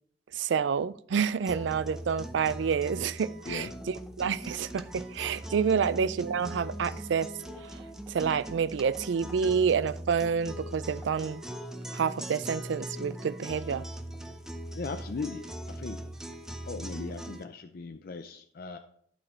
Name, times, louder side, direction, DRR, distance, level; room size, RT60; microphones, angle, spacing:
voice 1, 0.3-7.3 7.6-7.8 8.1-11.4 11.9-13.8, right 6 dB, 70° right, 0.4 m, -28 dB
sound 1, 1.4-17.4, right 1 dB, 5° right, 0.5 m, -40 dB
voice 2, 14.7-16.0 16.7-18.8, left 4 dB, 50° left, 0.5 m, -38 dB
11.5 x 4.3 x 4.5 m
head